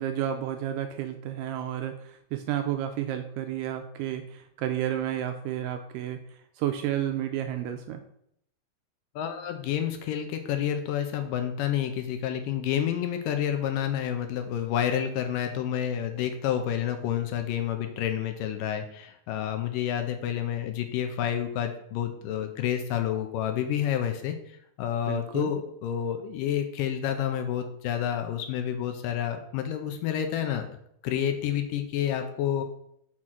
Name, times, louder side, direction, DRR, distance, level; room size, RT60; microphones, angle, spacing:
voice 1, 0.0-6.2 6.6-8.0 25.1-25.5, right 11 dB, 80° right, 6 dB, 1.9 m, -31 dB
voice 2, 9.2-30.8 31.0-32.6, left 10 dB, 80° left, 6 dB, 2.1 m, -29 dB
6.2 x 3.7 x 5.9 m, 0.73 s
omnidirectional pair, 4.1 m